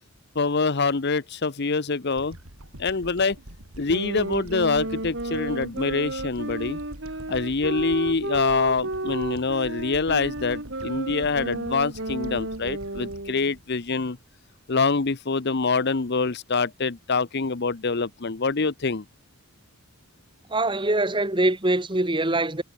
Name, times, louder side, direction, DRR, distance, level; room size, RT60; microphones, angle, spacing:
voice 1, 0.3-2.4 2.8-3.4 3.8-6.8 7.3-14.2 14.7-19.0, left 4 dB, 50° left, 0.8 m, -25 dB
sound 1, 2.2-14.6, right 1 dB, 80° right, 4.2 m, -45 dB
sound 2, 3.9-13.5, right 2 dB, 55° right, 3.8 m, -32 dB
voice 2, 20.5-22.6, right 2 dB, 20° right, 1.7 m, -23 dB
head